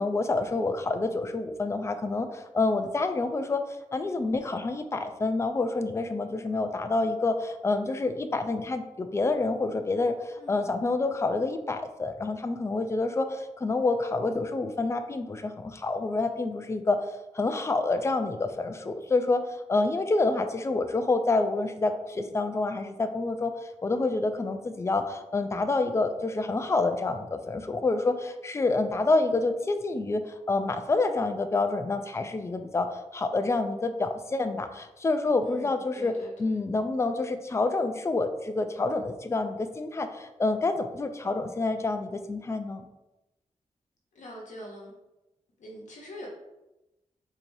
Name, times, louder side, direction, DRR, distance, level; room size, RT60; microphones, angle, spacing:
voice 1, 0.0-3.6 3.9-17.0 17.3-19.4 19.7-23.5 23.8-42.8, left 3 dB, 20° left, 7 dB, 0.3 m, -28 dB
voice 2, 10.4-10.7 35.4-36.6 44.1-44.9 45.6-46.3, equal, 80° left, -2 dB, 0.9 m, -44 dB
4.5 x 2.8 x 2.6 m, 0.96 s
cardioid pair, 80°, 12 cm